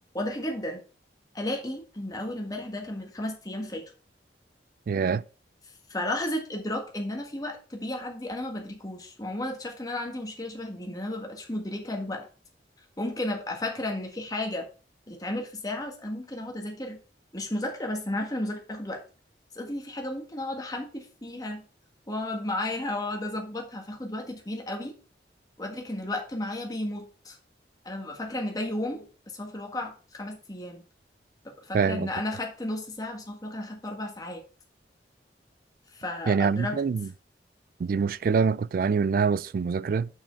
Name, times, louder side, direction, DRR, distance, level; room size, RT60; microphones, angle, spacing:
voice 1, 0.1-0.8 1.3-3.8 5.9-12.3 13.0-14.7 15.1-17.0 17.3-19.0 19.5-21.6 22.1-25.0 25.6-27.4 27.8-29.0 29.3-30.8 31.4-34.4 35.9-36.8, left 1 dB, 20° left, 1.7 m, -33 dB
voice 2, 4.9-5.2 31.7-32.1 36.3-37.1 37.8-40.1, right 5 dB, 50° right, 0.3 m, -25 dB
6.9 x 6.0 x 4.5 m
head